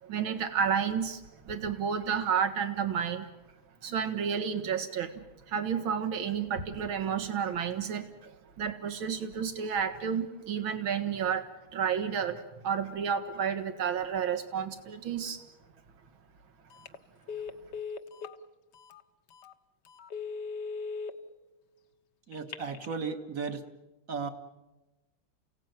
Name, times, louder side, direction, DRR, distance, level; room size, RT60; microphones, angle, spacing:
voice 1, 0.0-3.3 3.8-11.5 11.7-15.4, right 7 dB, 70° right, 9 dB, 2.5 m, -31 dB
Telephone, 16.7-17.0 17.3-18.4 18.9-19.0 19.4-19.5 20.0-21.1 22.3-22.9, left 5 dB, 55° left, 1.6 m, -38 dB
voice 2, 22.3-23.6 24.1-24.3, right 5 dB, 40° right, 8 dB, 1.8 m, -35 dB
29.0 x 17.5 x 9.2 m, 1.1 s
omnidirectional pair, 2.4 m